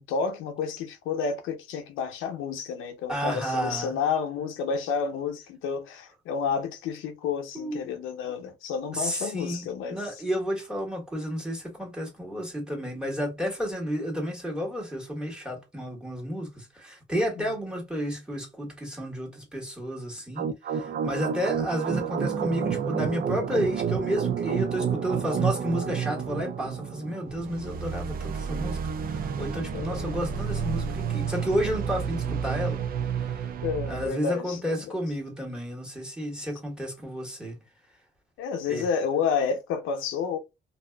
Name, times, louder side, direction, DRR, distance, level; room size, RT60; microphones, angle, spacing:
voice 1, 0.0-10.1 17.4-17.5 29.4-30.0 33.6-34.9 38.4-40.4, left 6 dB, 90° left, 0.6 m, -30 dB
voice 2, 3.1-3.9 7.5-7.8 8.9-32.8 33.1-33.5 33.9-37.6 38.7-38.9, equal, 5° right, 1.3 m, -31 dB
sound 1, 20.4-34.1, right 7 dB, 50° right, 0.4 m, -30 dB
2.5 x 2.4 x 2.3 m
cardioid pair, 90°, 20 cm